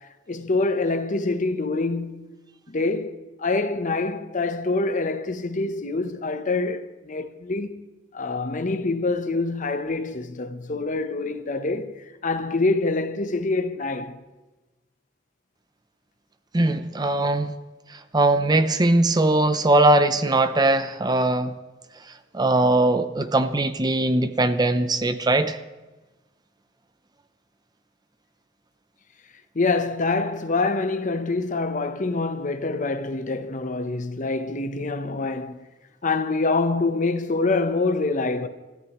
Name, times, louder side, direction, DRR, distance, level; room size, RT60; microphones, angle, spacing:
voice 1, 0.0-2.3 2.7-7.8 8.1-14.2 29.5-35.7 36.0-38.5, left 3 dB, 40° left, 0.8 m, -26 dB
voice 2, 16.5-17.5 18.1-21.5 22.3-25.6, right 2 dB, 20° right, 0.6 m, -20 dB
29.5 x 14.0 x 3.1 m
head